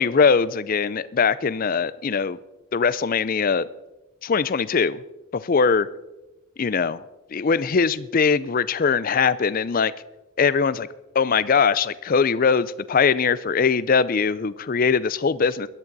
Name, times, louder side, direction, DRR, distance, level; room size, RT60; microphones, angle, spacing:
voice 1, 0.0-2.4 2.7-3.7 4.2-5.0 5.3-5.9 6.6-7.0 7.3-9.9 10.4-10.9 11.1-15.7, left 5 dB, 40° left, 17 dB, 0.4 m, -21 dB
17.0 x 11.5 x 4.0 m, 1.0 s
head